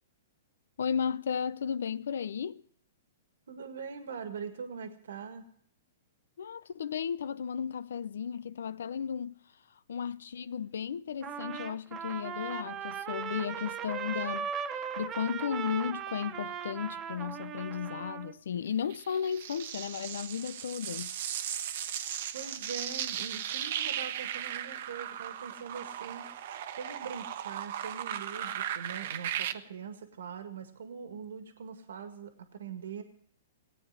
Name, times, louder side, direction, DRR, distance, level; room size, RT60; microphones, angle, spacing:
voice 1, 0.8-2.6 6.4-9.4 9.9-14.5 15.0-21.1, left 7 dB, 75° left, 0.6 m, -34 dB
voice 2, 3.5-5.4 22.3-26.3 26.7-33.0, right 6 dB, 80° right, 1.8 m, -42 dB
Trumpet, 11.2-18.3, right 8 dB, 25° right, 0.8 m, -38 dB
sound 1, 18.9-29.5, right 10 dB, 60° right, 1.1 m, -37 dB
18.5 x 9.0 x 7.4 m
hypercardioid pair, 130°, 0 cm